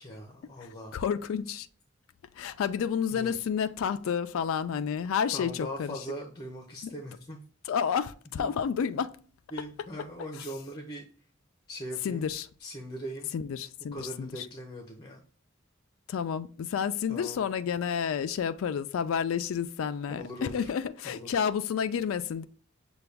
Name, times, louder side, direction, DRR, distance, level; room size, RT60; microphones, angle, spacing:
voice 1, 0.0-1.0 3.1-3.3 5.3-7.4 8.4-8.5 9.5-11.1 11.7-12.2 12.6-13.3 13.9-15.2 17.1-17.4 20.1-20.7 21.0-21.3, equal, 20° left, 0.7 m, -40 dB
voice 2, 0.6-1.7 2.4-6.0 7.6-9.1 12.0-12.5 13.3-14.5 16.1-22.5, left 7 dB, 85° left, 0.3 m, -30 dB
6.7 x 2.3 x 3.4 m
head